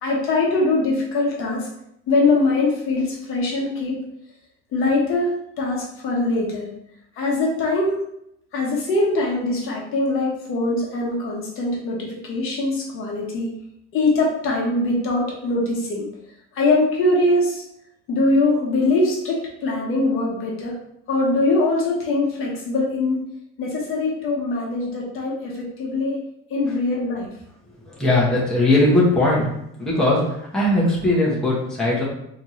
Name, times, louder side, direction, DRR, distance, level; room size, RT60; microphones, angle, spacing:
voice 1, 0.0-1.7 2.1-4.0 4.7-6.7 7.2-8.0 8.5-13.5 13.9-16.1 16.5-17.6 18.1-20.8 21.1-23.2 23.6-26.2 26.5-27.3, left 2 dB, 45° left, -2 dB, 1.0 m, -22 dB
voice 2, 27.9-29.5 29.8-32.0, left 1 dB, ahead, -6 dB, 1.1 m, -19 dB
4.2 x 2.9 x 3.1 m, 0.77 s
cardioid pair, 155°, 30 cm